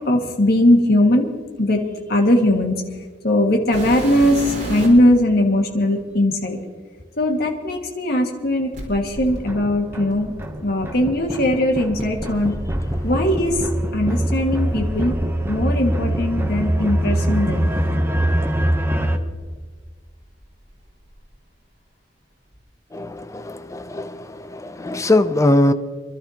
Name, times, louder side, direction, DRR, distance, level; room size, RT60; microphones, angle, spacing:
voice 1, 0.1-1.3 1.6-1.8 2.1-2.7 3.2-6.6 7.2-10.3 10.6-12.5 13.0-13.5 13.9-15.1 15.5-17.7, left 1 dB, 55° left, 1 dB, 1.9 m, -19 dB
sound 1, 3.7-5.1 6.0-6.1 8.7-10.8 12.0-15.7 16.0-17.0 17.8-17.9 18.5-18.6 19.3-20.4 20.7-21.2 22.5-22.6, right 1 dB, 45° right, 4.4 m, -33 dB
sound 2, 9.3-19.2, right 1 dB, 15° right, 0.8 m, -24 dB
voice 2, 22.9-25.7, left 1 dB, 15° left, 11 dB, 0.5 m, -21 dB
27.5 x 12.0 x 2.9 m, 1.5 s
head